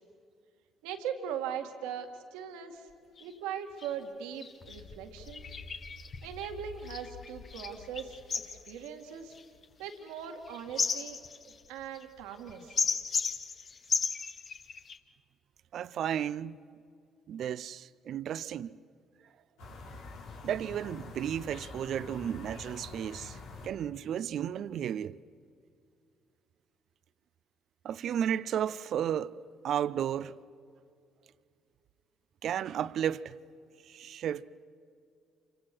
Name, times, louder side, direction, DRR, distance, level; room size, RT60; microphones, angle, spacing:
voice 1, 0.8-2.9 3.2-5.5 6.2-9.3 9.8-11.2 11.7-12.8, right 8 dB, 80° right, 2.1 m, -40 dB
sound 1, 2.9-3.0 3.2-3.3 3.8-3.9 4.4-15.0, left 5 dB, 50° left, 1.6 m, -36 dB
voice 2, 15.7-16.6 17.3-18.8 20.4-25.2 27.8-29.4 29.6-30.4 32.4-33.4 33.9-34.5, right 9 dB, 65° right, 0.6 m, -33 dB
sound 2, 19.6-23.7, left 3 dB, 80° left, 4.4 m, -46 dB
29.0 x 26.0 x 6.2 m
hypercardioid pair, 55°, 0 cm